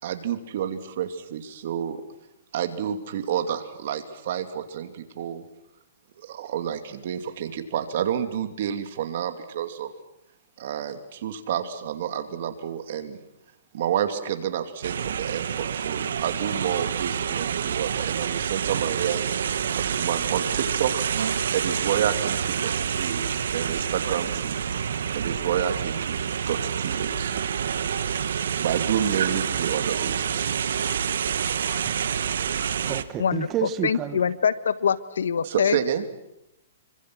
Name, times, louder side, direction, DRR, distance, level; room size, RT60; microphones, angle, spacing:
voice 1, 0.0-2.0 2.5-5.4 6.2-9.9 10.6-13.2 13.7-19.2 19.7-21.0 21.5-24.6 25.1-27.4 28.6-30.4 35.4-36.0, right 9 dB, 55° right, 7 dB, 2.7 m, -29 dB
sound 1, 14.8-33.0, right 8 dB, 75° right, 1.3 m, -27 dB
voice 2, 32.5-34.2, right 11 dB, 20° right, 12 dB, 1.3 m, -31 dB
voice 3, 33.2-35.8, left 7 dB, 90° left, 14 dB, 1.4 m, -24 dB
27.0 x 25.0 x 6.3 m, 0.85 s
hypercardioid pair, 155°, 0 cm